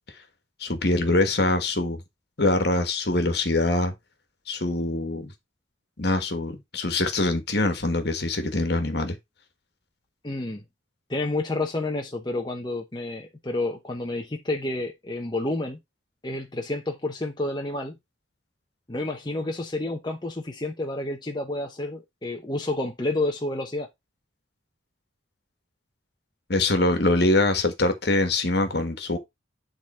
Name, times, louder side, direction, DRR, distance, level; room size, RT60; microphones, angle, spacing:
voice 1, 0.6-2.0 2.4-3.9 4.5-5.3 6.0-9.2 26.5-29.2, left 2 dB, 55° left, 1.6 m, -24 dB
voice 2, 10.2-10.6 11.1-15.8 16.2-17.9 18.9-23.9, left 2 dB, 20° left, 0.8 m, -29 dB
10.0 x 3.8 x 4.3 m
head